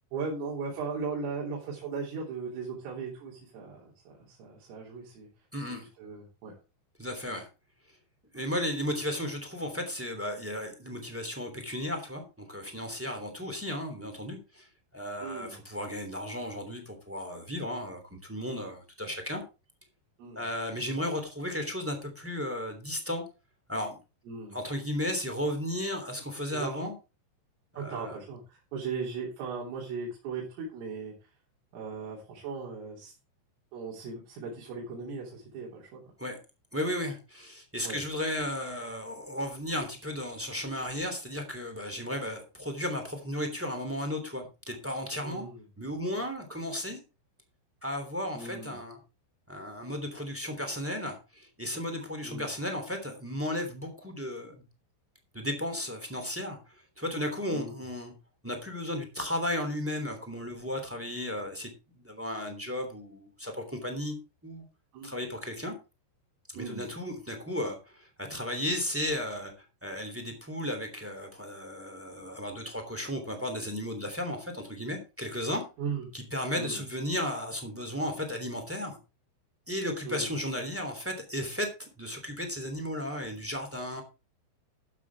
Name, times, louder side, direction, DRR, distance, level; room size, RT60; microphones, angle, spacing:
voice 1, 0.1-5.3 5.6-6.5 15.2-15.5 20.2-20.4 24.3-24.6 26.5-26.9 27.8-31.1 31.7-33.1 33.7-36.0 37.8-38.0 45.2-45.6 48.3-48.8 52.2-52.5 57.5-57.8 64.9-65.3 66.6-66.8 75.8-76.1 76.5-76.8 80.1-80.3, right 5 dB, 85° right, -4 dB, 5.8 m, -38 dB
voice 2, 5.5-5.8 7.0-7.5 8.3-14.7 14.9-19.4 20.3-23.2 23.7-24.0 24.5-26.9 27.7-28.2 36.2-36.4 36.7-45.5 45.8-47.0 47.8-49.0 49.5-54.6 55.3-56.6 57.0-58.1 58.4-61.7 61.9-64.1 64.4-64.6 65.0-65.7 66.5-75.6 76.1-79.0 79.7-84.0, left 1 dB, 5° right, 4 dB, 1.6 m, -34 dB
12.5 x 9.6 x 3.5 m, 0.30 s
omnidirectional pair, 5.7 m